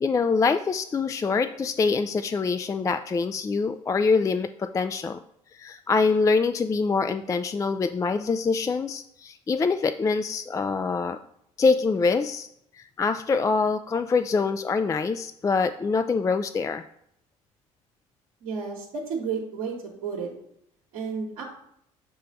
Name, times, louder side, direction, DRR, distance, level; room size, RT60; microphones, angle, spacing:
voice 1, 0.0-5.2 5.5-11.2 11.6-12.5 12.8-16.9, left 4 dB, 20° left, 10 dB, 0.3 m, -25 dB
voice 2, 18.4-19.8 20.0-20.3 20.9-21.4, right 5 dB, 65° right, -1 dB, 1.1 m, -31 dB
6.9 x 3.2 x 5.3 m, 0.73 s
figure-of-eight pair, 55°, 18 cm